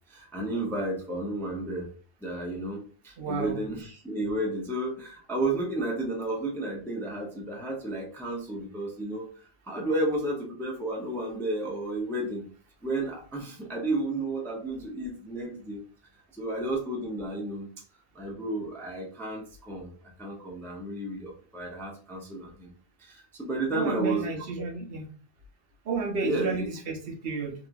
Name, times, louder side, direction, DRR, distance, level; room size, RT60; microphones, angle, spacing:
voice 1, 0.1-1.9 2.2-9.3 9.7-12.4 12.8-15.8 16.3-17.7 18.1-19.9 20.2-22.7 23.0-24.3 26.2-26.7, right 2 dB, 5° left, -1 dB, 0.4 m, -32 dB
voice 2, 3.2-3.6 23.7-25.0 25.9-27.5, right 4 dB, 65° right, 1 dB, 0.8 m, -32 dB
2.8 x 2.4 x 2.4 m, 0.41 s
omnidirectional pair, 1.1 m